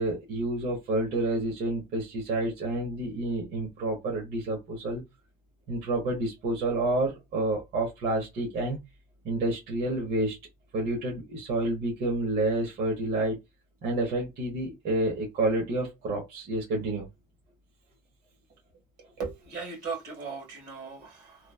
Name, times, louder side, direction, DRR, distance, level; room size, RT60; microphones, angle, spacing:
voice 1, 0.0-5.0 5.7-8.8 9.2-10.4 10.7-13.4 13.8-17.1, right 2 dB, 65° right, 1.1 m, -29 dB
voice 2, 19.2-21.5, right 5 dB, 80° right, 1.7 m, -37 dB
3.1 x 2.3 x 2.3 m
cardioid pair, 110°, 17 cm